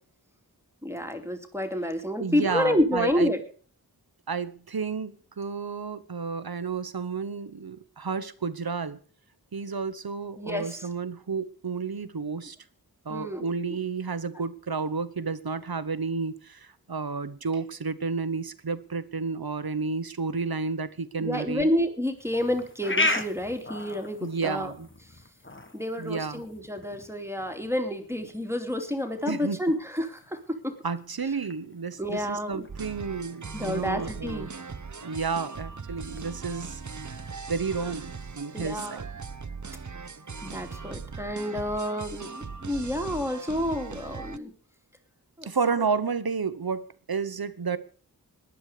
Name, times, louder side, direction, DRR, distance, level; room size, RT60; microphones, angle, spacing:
voice 1, 0.8-3.4 10.4-10.9 13.1-13.5 21.2-24.7 25.7-30.7 32.0-32.6 33.5-34.5 38.5-39.0 40.4-44.5 45.4-45.5, left 1 dB, 5° right, 2.6 m, -29 dB
voice 2, 2.2-3.3 4.3-9.0 9.5-12.6 13.0-21.7 24.2-24.9 26.0-26.4 29.3-29.6 30.8-34.5 35.0-36.8 37.5-39.1 45.4-47.8, right 5 dB, 75° right, 1.1 m, -31 dB
sound 1, 22.2-36.3, left 2 dB, 30° left, 1.6 m, -37 dB
sound 2, 32.7-44.4, right 5 dB, 50° right, 0.9 m, -39 dB
18.5 x 11.0 x 5.0 m
wide cardioid pair, 60°, 37 cm